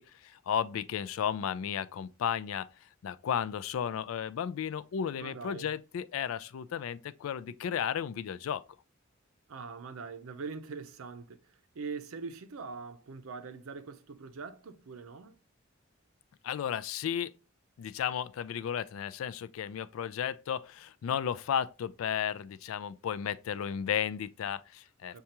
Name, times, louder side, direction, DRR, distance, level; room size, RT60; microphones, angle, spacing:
voice 1, 0.0-8.6 16.4-17.3 17.8-25.2, left 8 dB, 75° left, 0.3 m, -34 dB
voice 2, 5.2-5.7 9.5-11.4 11.7-15.4 25.1-25.2, right 4 dB, 90° right, 0.5 m, -42 dB
6.4 x 2.3 x 2.8 m
head